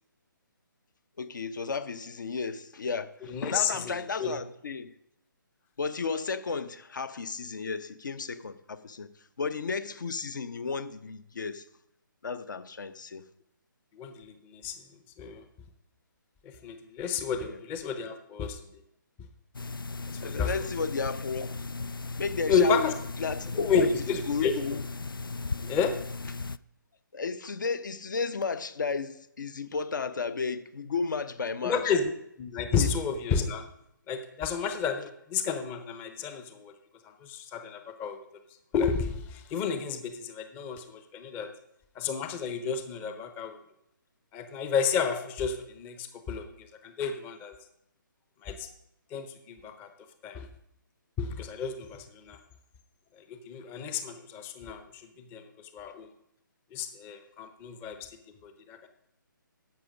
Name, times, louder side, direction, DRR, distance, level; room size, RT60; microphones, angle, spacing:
voice 1, 1.2-4.9 5.8-9.1 9.4-11.7 12.2-13.3 17.4-17.6 20.2-21.6 22.2-23.9 24.3-24.8 27.1-31.9 32.8-32.9, left 5 dB, 65° left, 0.8 m, -33 dB
voice 2, 3.3-4.4 13.9-14.8 15.2-15.4 16.4-18.8 20.2-20.5 22.5-22.9 23.6-24.5 25.6-25.9 31.6-32.1 32.4-33.7 34.1-36.7 37.0-38.2 38.7-41.5 42.0-43.6 44.3-47.6 48.4-48.7 49.1-49.9 50.2-50.5 51.2-52.4 53.2-56.1 56.7-58.1 58.4-58.9, left 6 dB, 15° left, 0.6 m, -31 dB
sound 1, 19.5-26.6, left 3 dB, 90° left, 0.4 m, -37 dB
10.5 x 7.1 x 5.1 m
figure-of-eight pair, 140°, 11 cm